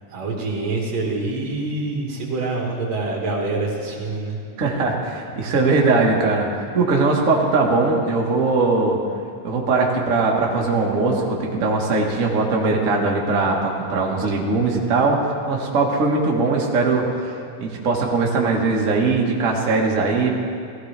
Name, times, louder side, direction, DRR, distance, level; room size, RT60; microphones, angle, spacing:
voice 1, 0.1-4.4, right 3 dB, 55° right, -1 dB, 2.7 m, -26 dB
voice 2, 4.6-9.0 9.4-15.2 15.5-17.3 17.6-20.3, right 3 dB, 70° right, -1 dB, 0.7 m, -20 dB
16.5 x 15.0 x 3.3 m, 2.5 s
omnidirectional pair, 3.9 m